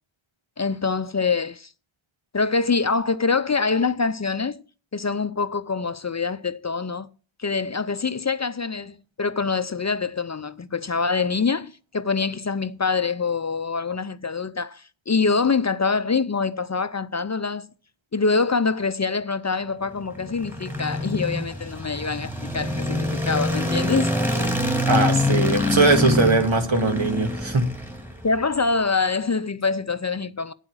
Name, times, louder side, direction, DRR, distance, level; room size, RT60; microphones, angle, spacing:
voice 1, 0.6-1.7 2.3-4.6 4.9-7.1 7.4-17.7 18.1-24.1 24.7-24.9 28.2-30.5, left 4 dB, 35° left, 0.6 m, -25 dB
sound 1, 20.0-28.4, left 1 dB, 5° right, 2.3 m, -25 dB
voice 2, 24.9-27.6, right 3 dB, 70° right, 2.2 m, -20 dB
9.1 x 8.6 x 6.3 m
wide cardioid pair, 45°, 48 cm